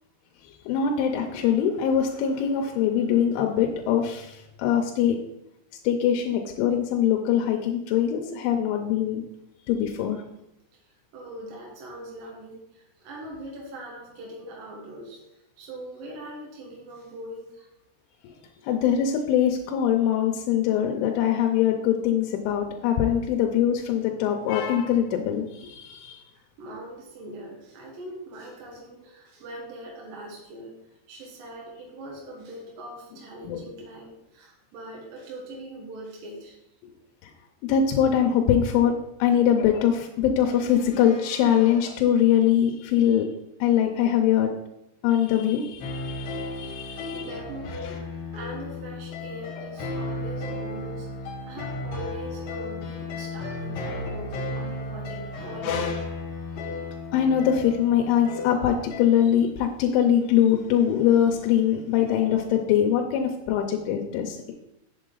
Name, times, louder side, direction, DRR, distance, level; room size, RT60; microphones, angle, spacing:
voice 1, 0.4-5.2 5.8-9.2 9.7-10.2 18.2-18.3 18.6-26.2 33.4-33.6 37.2-37.3 37.6-43.3 43.6-44.5 45.0-47.3 47.7-48.0 53.9-54.1 55.6-56.0 56.6-56.7 57.1-64.5, left 9 dB, 85° left, 2 dB, 3.2 m, -23 dB
voice 2, 10.7-17.7 26.6-36.6 46.8-48.0 48.3-56.0, right 1 dB, 60° right, -2 dB, 2.6 m, -41 dB
sound 1, 45.8-59.1, left 2 dB, 65° left, 2.3 m, -34 dB
7.9 x 7.3 x 3.9 m, 0.85 s
omnidirectional pair, 5.4 m